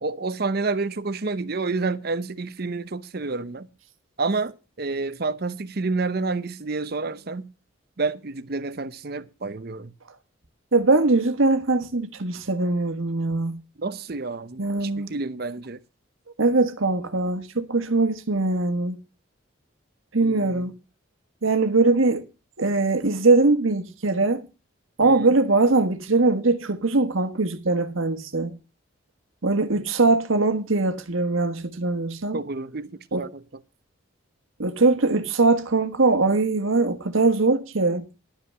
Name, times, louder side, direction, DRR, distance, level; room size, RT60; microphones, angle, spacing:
voice 1, 0.0-3.7 4.2-7.5 8.0-9.9 13.8-15.8 20.2-20.6 25.0-25.3 32.3-32.9 33.2-33.4, right 3 dB, 50° right, 0.7 m, -29 dB
voice 2, 10.7-13.6 14.6-15.1 16.4-19.0 20.1-20.7 21.4-22.2 22.6-24.4 25.0-28.5 29.4-32.4 33.1-33.3 34.6-38.0, right 3 dB, 80° right, 1.4 m, -21 dB
11.5 x 5.7 x 7.5 m
head